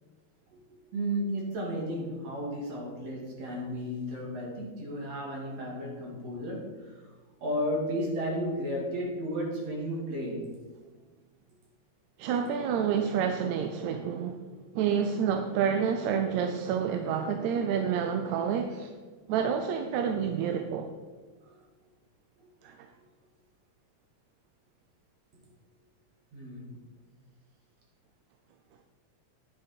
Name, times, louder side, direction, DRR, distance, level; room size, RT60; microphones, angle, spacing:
voice 1, 0.9-6.9 7.4-10.5 21.4-21.6 22.4-22.5 26.3-26.7, equal, 55° right, -2 dB, 3.4 m, -33 dB
voice 2, 12.2-14.4 14.7-18.9 19.3-20.9 22.6-22.9, right 7 dB, 75° right, 6 dB, 1.8 m, -28 dB
9.9 x 8.7 x 4.3 m, 1.4 s
omnidirectional pair, 3.5 m